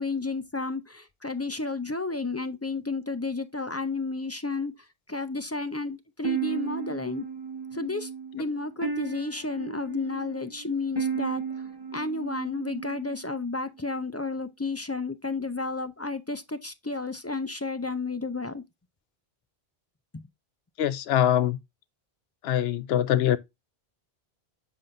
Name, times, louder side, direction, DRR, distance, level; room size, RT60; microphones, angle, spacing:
voice 1, 0.0-4.7 5.1-7.2 7.7-11.6 11.9-18.6 20.1-20.2, left 3 dB, 25° left, 0.3 m, -32 dB
sound 1, 6.2-13.4, right 5 dB, 25° right, 1.0 m, -34 dB
voice 2, 20.8-21.6 22.4-23.4, left 11 dB, 85° left, 0.8 m, -23 dB
7.2 x 5.5 x 2.5 m
omnidirectional pair, 1.0 m